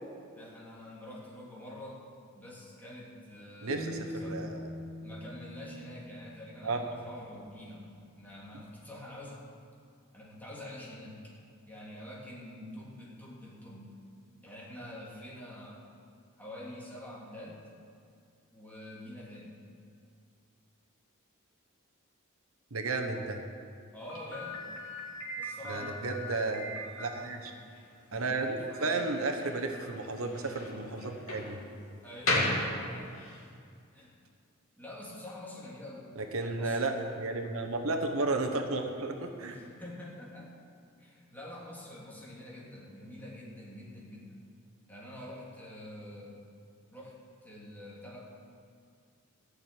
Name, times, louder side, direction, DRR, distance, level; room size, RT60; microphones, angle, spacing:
voice 1, 0.3-2.0 2.3-4.5 5.0-7.9 8.1-9.4 10.1-11.3 11.7-14.0 14.4-15.8 16.4-17.6 18.5-19.6 23.9-24.7 25.4-26.0 28.1-29.1 32.0-33.1 33.9-34.2 34.8-36.1 36.4-36.8 39.4-40.5 41.0-44.4 44.9-46.4 46.9-48.3, left 1 dB, 10° left, -5 dB, 2.8 m, -46 dB
voice 2, 3.6-4.6 6.6-6.8 22.7-23.4 25.7-26.7 27.0-27.5 28.1-31.6 36.2-39.6, right 3 dB, 80° right, 4 dB, 1.1 m, -33 dB
sound 1, 3.7-6.8, equal, 65° left, 2.8 m, -42 dB
Slam, 24.1-33.4, left 1 dB, 85° left, 2.6 m, -37 dB
14.0 x 6.5 x 9.0 m, 2.3 s
head